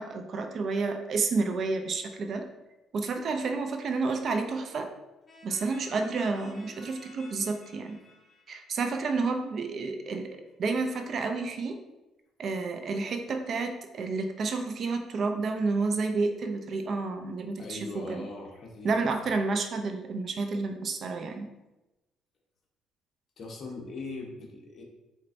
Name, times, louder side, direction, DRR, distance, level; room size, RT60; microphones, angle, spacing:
voice 1, 0.0-2.4 2.9-4.9 5.4-8.0 8.5-10.3 10.6-11.8 12.4-18.2 18.8-21.5, right 4 dB, 50° right, 6 dB, 0.5 m, -30 dB
sound 1, 5.3-9.8, left 2 dB, 25° left, 1.3 m, -53 dB
voice 2, 17.6-19.1 23.4-24.8, left 3 dB, 50° left, 0 dB, 1.1 m, -40 dB
4.4 x 4.2 x 2.6 m, 1.0 s
cardioid pair, 100°, 0 cm